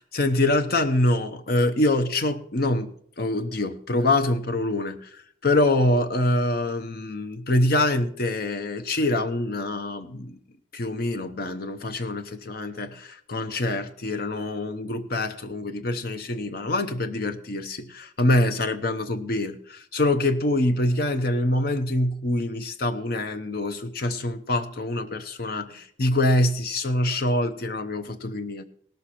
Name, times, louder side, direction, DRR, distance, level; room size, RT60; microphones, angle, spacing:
voice 1, 0.1-2.9 3.2-10.3 10.7-28.6, left 1 dB, 50° left, 0.7 m, -25 dB
18.0 x 6.6 x 4.3 m
head